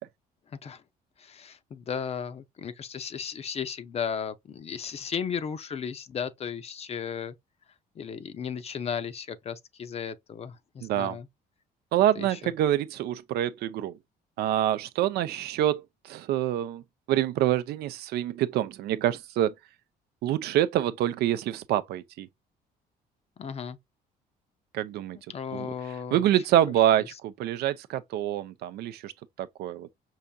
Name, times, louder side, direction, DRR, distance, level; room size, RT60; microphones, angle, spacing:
voice 1, 1.2-7.4 8.0-11.3 12.2-12.5 23.4-23.8 25.3-26.2, left 7 dB, 35° left, 0.6 m, -35 dB
voice 2, 10.8-11.2 11.9-14.0 14.4-16.8 17.1-19.5 20.2-22.3 24.7-25.2 25.5-25.7 26.1-29.1 29.4-29.9, right 12 dB, 75° right, 0.5 m, -26 dB
5.5 x 2.6 x 2.2 m
cardioid pair, 110°, 17 cm